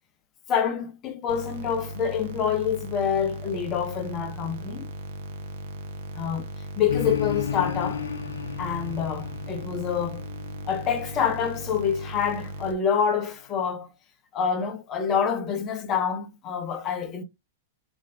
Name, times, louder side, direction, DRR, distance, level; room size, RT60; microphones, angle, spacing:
voice 1, 0.5-4.9 6.1-6.4 6.8-8.1 8.6-10.2 10.7-13.9 14.3-17.2, left 7 dB, 35° left, 0.7 m, -27 dB
sound 1, 1.3-12.7, right 2 dB, 60° right, 0.5 m, -38 dB
sound 2, 6.9-12.5, left 8 dB, 80° left, 0.4 m, -34 dB
2.4 x 2.1 x 3.3 m
hypercardioid pair, 105°, 0 cm